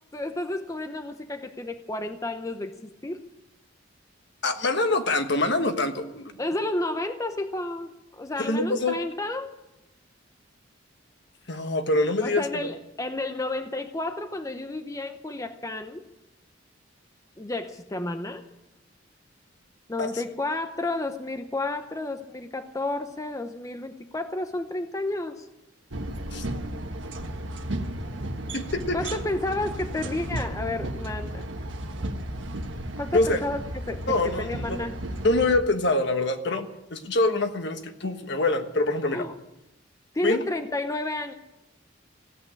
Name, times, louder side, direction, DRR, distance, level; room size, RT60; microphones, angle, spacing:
voice 1, 0.1-3.2 6.4-9.5 12.2-16.0 17.4-18.4 19.9-25.5 28.9-31.4 33.0-33.6 33.9-34.9 39.1-39.3 40.1-41.3, left 2 dB, 15° left, 7 dB, 0.8 m, -31 dB
voice 2, 4.4-6.3 8.4-9.0 11.5-12.6 20.0-20.1 26.3-26.4 28.5-29.0 33.1-33.4 34.1-34.8 35.2-39.2 40.2-40.4, left 2 dB, 65° left, 6 dB, 1.4 m, -25 dB
sound 1, 25.9-35.6, right 1 dB, 75° right, 1.3 m, -34 dB
16.0 x 8.7 x 9.8 m, 0.93 s
head